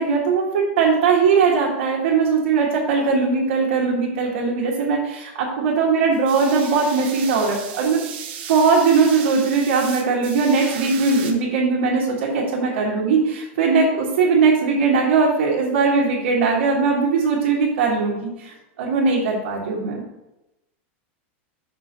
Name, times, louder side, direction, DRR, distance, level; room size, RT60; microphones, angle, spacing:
voice 1, 0.0-8.0 8.5-20.0, right 4 dB, 75° right, -5 dB, 1.6 m, -20 dB
sound 1, 6.1-11.3, right 8 dB, 55° right, 0.9 m, -35 dB
6.0 x 4.4 x 5.2 m, 0.95 s
supercardioid pair, 180°, 7 cm